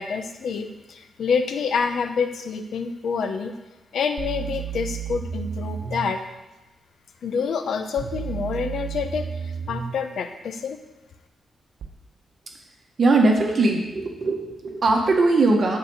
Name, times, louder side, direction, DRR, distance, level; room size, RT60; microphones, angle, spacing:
voice 1, 0.0-3.6 3.9-6.2 7.2-10.8, left 5 dB, 75° left, 7 dB, 0.8 m, -27 dB
sound 1, 4.2-6.1 8.0-10.0 11.8-11.9, right 7 dB, 70° right, 1.1 m, -32 dB
voice 2, 13.0-15.8, right 2 dB, 45° right, 1 dB, 1.7 m, -20 dB
9.5 x 5.0 x 7.3 m, 1.0 s
cardioid pair, 110°, 0 cm